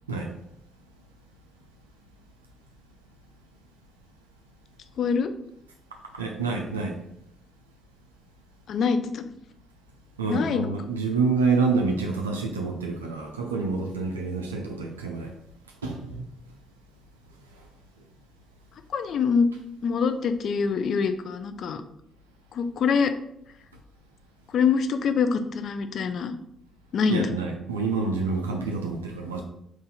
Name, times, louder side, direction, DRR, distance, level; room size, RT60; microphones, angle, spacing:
voice 1, 5.0-5.3 8.7-9.3 10.3-10.7 18.9-19.5 19.8-21.8 22.5-23.1 24.5-26.3 26.9-27.3, left 5 dB, 55° left, 9 dB, 0.4 m, -24 dB
voice 2, 5.9-7.0 10.2-15.3 15.8-16.3 17.4-17.7 18.0-18.1 27.1-29.4, right 4 dB, 85° right, 1 dB, 0.3 m, -28 dB
3.9 x 2.4 x 3.9 m, 0.76 s
figure-of-eight pair, 45°, 0 cm